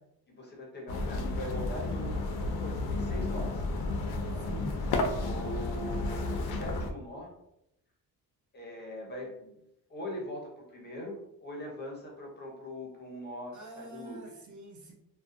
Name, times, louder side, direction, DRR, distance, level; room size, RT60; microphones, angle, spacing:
voice 1, 0.3-3.6 4.3-4.5 5.1-7.3 8.5-9.6 9.9-14.2, left 1 dB, 30° left, -1 dB, 0.6 m, -41 dB
sound 1, 0.9-6.9, left 2 dB, 90° left, 0.5 m, -32 dB
voice 2, 4.4-4.8 13.5-14.9, right 1 dB, 50° right, -1 dB, 0.6 m, -45 dB
2.6 x 2.1 x 2.4 m, 0.83 s
cardioid pair, 140°, 37 cm